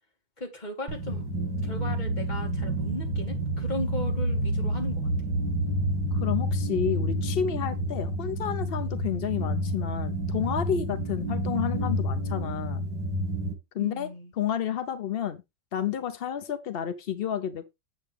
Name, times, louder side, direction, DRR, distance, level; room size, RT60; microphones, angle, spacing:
voice 1, 0.4-1.2 1.6-5.1 13.8-14.3, left 1 dB, 25° left, 2.4 m, -37 dB
sound 1, 0.9-13.5, right 1 dB, 70° right, 2.8 m, -29 dB
voice 2, 6.1-12.8 13.7-14.1 14.4-15.4 15.7-17.7, left 9 dB, 70° left, 0.5 m, -30 dB
8.0 x 7.9 x 3.4 m
omnidirectional pair, 2.0 m